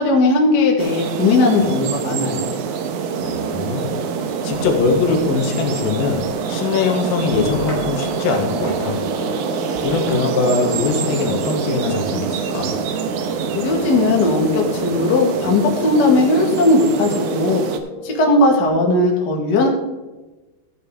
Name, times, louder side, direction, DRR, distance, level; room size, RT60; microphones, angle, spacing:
voice 1, 0.0-2.4 13.5-17.6 18.0-19.7, left 2 dB, 40° left, 0 dB, 1.8 m, -17 dB
sound 1, 0.8-17.8, right 6 dB, 75° right, 2.0 m, -25 dB
voice 2, 3.2-3.9 4.2-6.2 6.5-9.0 9.8-12.7, left 5 dB, 75° left, 2 dB, 3.1 m, -22 dB
sound 2, 4.5-6.6 7.0-9.4 9.7-10.1 10.7-12.0, equal, 25° right, 3.5 m, -34 dB
sound 3, 8.3-18.7, right 1 dB, 5° right, 2.9 m, -34 dB
13.5 x 9.1 x 3.6 m, 1.1 s
omnidirectional pair, 4.2 m